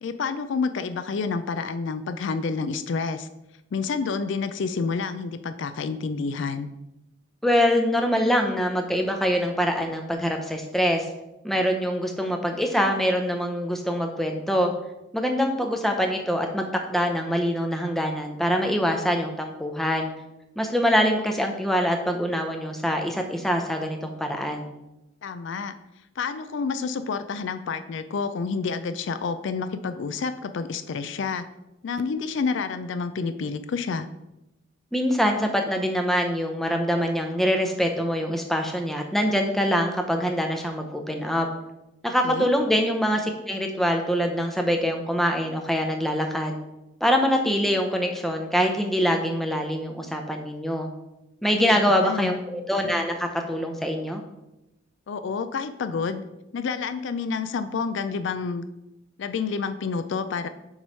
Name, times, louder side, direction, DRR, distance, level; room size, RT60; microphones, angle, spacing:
voice 1, 0.0-3.3 3.7-6.7 25.2-25.7 26.2-31.4 31.8-34.1 42.2-42.5 51.5-52.4 55.1-56.2 56.5-58.7 59.2-60.5, left 5 dB, 60° left, 10 dB, 0.3 m, -29 dB
voice 2, 7.4-11.1 11.4-14.7 15.1-20.1 20.6-24.7 34.9-41.5 42.0-46.5 47.0-50.9 51.4-54.2, equal, ahead, 3 dB, 0.6 m, -24 dB
7.3 x 3.1 x 5.3 m, 0.92 s
head